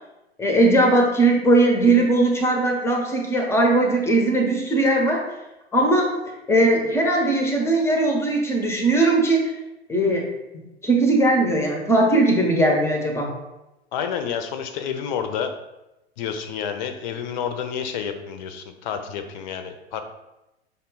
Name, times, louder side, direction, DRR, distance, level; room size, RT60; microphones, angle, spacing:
voice 1, 0.4-5.2 5.7-6.1 6.5-9.5 9.9-10.3 10.8-13.3, right 2 dB, 10° left, 1 dB, 0.6 m, -19 dB
voice 2, 13.9-15.5 16.2-20.0, left 7 dB, 45° left, 8 dB, 0.5 m, -29 dB
5.4 x 2.2 x 3.8 m, 0.95 s
figure-of-eight pair, 90°, 33 cm